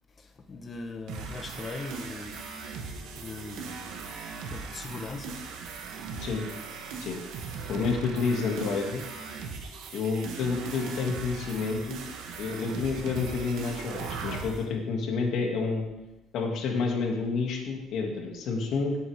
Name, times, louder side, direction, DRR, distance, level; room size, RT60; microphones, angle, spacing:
voice 1, 0.2-2.4 3.2-5.4, left 3 dB, 30° left, 6 dB, 1.2 m, -40 dB
sound 1, 1.1-14.6, right 5 dB, 70° right, 1.7 m, -39 dB
voice 2, 7.7-9.0 9.9-12.0 12.4-15.8 16.3-19.0, left 4 dB, 60° left, 1 dB, 2.5 m, -29 dB
17.5 x 8.5 x 3.6 m, 1.0 s
cardioid pair, 135°, 0 cm